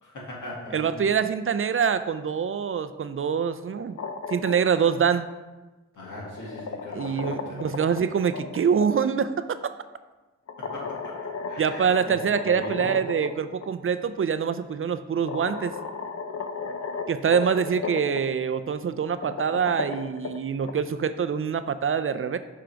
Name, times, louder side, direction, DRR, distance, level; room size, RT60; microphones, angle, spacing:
voice 1, 0.0-1.1 6.0-7.7 10.6-11.1 11.5-12.9, left 1 dB, 80° left, -4 dB, 2.0 m, -40 dB
voice 2, 0.7-4.0 4.3-5.3 6.9-9.6 11.6-15.7 17.1-22.4, right 7 dB, 45° right, 12 dB, 0.4 m, -25 dB
sound 1, 3.8-4.9 6.0-8.9 10.5-13.3 13.6-13.7 14.8-14.9 15.3-18.2 19.0-20.7, left 5 dB, 55° left, 0.7 m, -35 dB
6.8 x 3.8 x 4.6 m, 1.2 s
cardioid pair, 45°, 30 cm